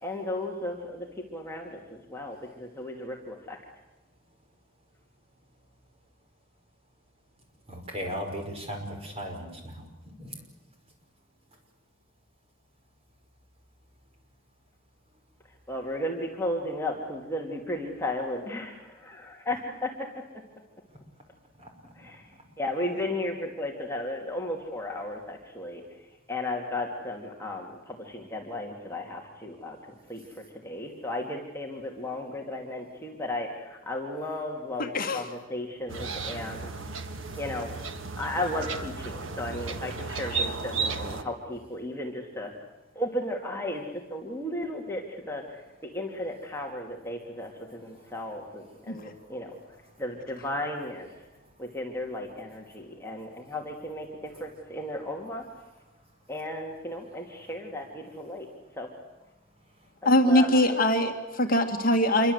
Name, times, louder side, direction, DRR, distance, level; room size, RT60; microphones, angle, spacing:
voice 1, 0.0-1.1 1.3-3.6 15.7-20.1 22.0-22.3 22.6-25.8 26.3-29.8 30.1-30.2 30.6-36.7 37.4-37.7 38.2-42.5 42.9-45.6 45.9-49.6 50.0-51.1 51.6-55.4 56.3-58.5 58.8-58.9 60.3-60.8, left 1 dB, 10° left, 0 dB, 2.6 m, -34 dB
voice 2, 7.7-10.4 21.6-21.9 47.9-48.1 48.9-49.0, equal, 30° right, 2 dB, 5.6 m, -38 dB
voice 3, 34.8-35.3 40.3-40.4 48.9-49.0 60.1-62.3, left 1 dB, 45° left, 4 dB, 2.0 m, -23 dB
sound 1, 35.9-41.2, right 4 dB, 65° right, 1.7 m, -34 dB
27.0 x 23.5 x 8.1 m, 1.0 s
head